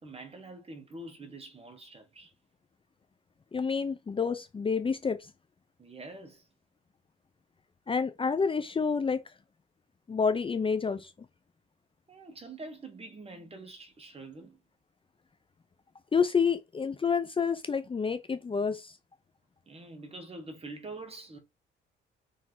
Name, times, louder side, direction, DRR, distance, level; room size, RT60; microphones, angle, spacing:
voice 1, 0.0-2.3 5.8-6.5 12.1-14.6 19.7-21.4, right 2 dB, 30° right, 2.0 m, -45 dB
voice 2, 3.5-5.3 7.9-9.2 10.1-11.1 16.1-19.0, left 5 dB, 25° left, 0.6 m, -28 dB
6.0 x 3.5 x 4.6 m
cardioid pair, 90°, 20 cm